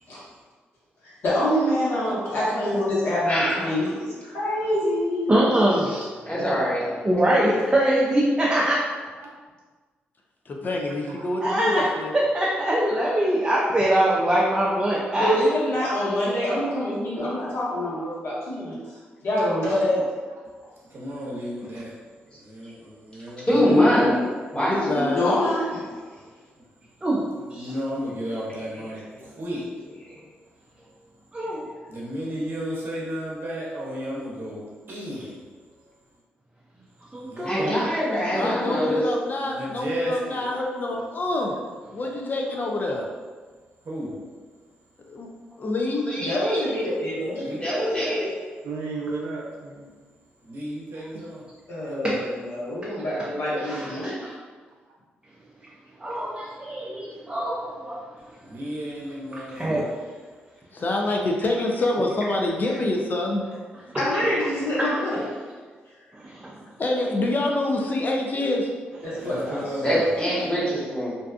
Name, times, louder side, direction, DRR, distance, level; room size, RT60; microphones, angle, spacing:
voice 1, 1.0-5.5 15.1-18.7 19.2-20.1 25.1-26.2 46.2-47.5 51.7-54.2 62.7-62.8 64.0-65.3 69.0-69.8, left 1 dB, 65° left, -8 dB, 1.1 m, -26 dB
voice 2, 3.2-3.6 6.3-6.9 23.5-24.2 24.5-25.2 28.7-28.8 37.4-39.0 46.1-46.6 47.6-48.3 69.8-71.2, equal, 25° left, -7 dB, 1.2 m, -23 dB
voice 3, 5.3-6.0 7.0-8.8 11.4-11.9 12.1-15.3 27.0-27.2 27.5-27.7 31.3-31.6 37.1-37.7 52.0-52.2 53.6-54.1 56.0-58.0 59.3-59.9 66.2-66.5, right 1 dB, 20° right, -5 dB, 0.5 m, -23 dB
voice 4, 10.5-12.2 23.6-23.9 24.6-25.3 38.3-41.5 41.9-43.1 45.1-45.3 45.6-46.0 60.7-63.4 66.8-68.7, left 2 dB, 45° left, 0 dB, 0.5 m, -26 dB
voice 5, 11.1-11.9 20.3-20.4 48.6-49.9, right 3 dB, 80° right, -2 dB, 0.5 m, -35 dB
voice 6, 20.9-21.9 22.4-23.8 27.5-29.0 29.4-29.6 31.9-34.6 34.9-35.3 37.3-37.8 39.5-40.4 43.9-44.1 47.4-47.6 50.5-51.4 58.4-59.9 69.2-70.1, equal, 55° right, -5 dB, 0.8 m, -33 dB
2.6 x 2.3 x 2.4 m, 1.4 s
supercardioid pair, 50°, 4 cm